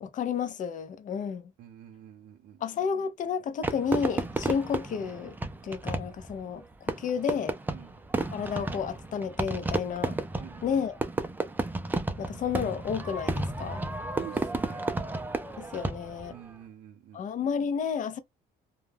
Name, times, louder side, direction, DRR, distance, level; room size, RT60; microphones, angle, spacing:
voice 1, 0.0-1.5 2.6-5.4 5.6-7.6 8.3-10.2 10.6-11.0 12.2-13.8 15.6-16.4 17.1-18.2, left 7 dB, 50° left, 0.6 m, -31 dB
voice 2, 1.6-2.6 7.7-7.9 10.4-10.6 14.2-15.1 16.3-17.3, right 10 dB, 70° right, 0.6 m, -47 dB
Fireworks, 3.6-16.3, right 2 dB, 10° right, 0.4 m, -32 dB
2.3 x 2.2 x 3.3 m
cardioid pair, 110°, 17 cm